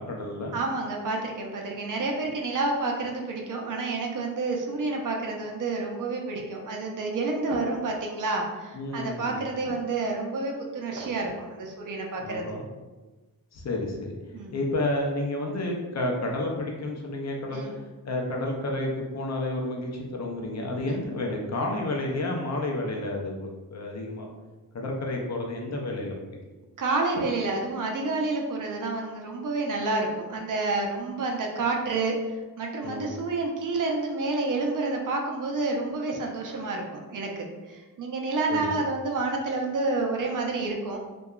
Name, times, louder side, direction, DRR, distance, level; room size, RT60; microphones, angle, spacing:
voice 1, 0.0-0.6 8.7-9.4 12.2-12.6 13.5-14.1 14.5-17.8 18.1-24.3 24.7-26.2 32.8-33.1 38.5-38.7, left 1 dB, 50° left, 0 dB, 0.5 m, -30 dB
voice 2, 0.5-12.5 14.3-14.5 17.5-17.7 20.9-21.0 26.8-41.0, right 3 dB, 60° right, 1 dB, 0.5 m, -29 dB
2.7 x 2.2 x 2.3 m, 1.2 s
wide cardioid pair, 110°, 36 cm